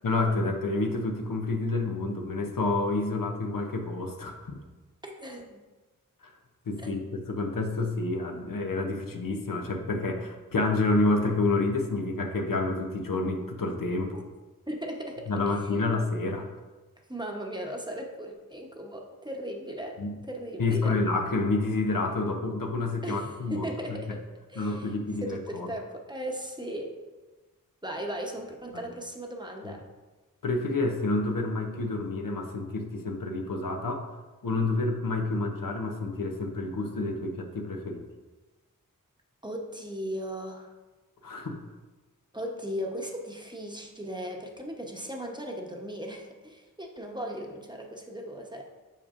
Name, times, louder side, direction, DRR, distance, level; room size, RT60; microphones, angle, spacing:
voice 1, 0.0-4.6 6.2-6.3 6.7-14.2 15.3-16.5 20.0-20.1 20.6-24.2 24.6-25.7 28.7-28.9 29.6-29.7 30.4-34.0 34.4-38.0 41.2-41.6, left 3 dB, 75° left, 3 dB, 0.8 m, -29 dB
voice 2, 5.0-5.6 6.8-6.9 14.7-15.6 17.1-20.0 20.3-20.9 23.0-24.2 24.5-24.9 25.2-26.9 27.8-29.8 39.4-40.7 42.3-48.6, equal, 15° right, 1 dB, 0.9 m, -37 dB
7.5 x 5.2 x 2.5 m, 1.2 s
wide cardioid pair, 50°, 34 cm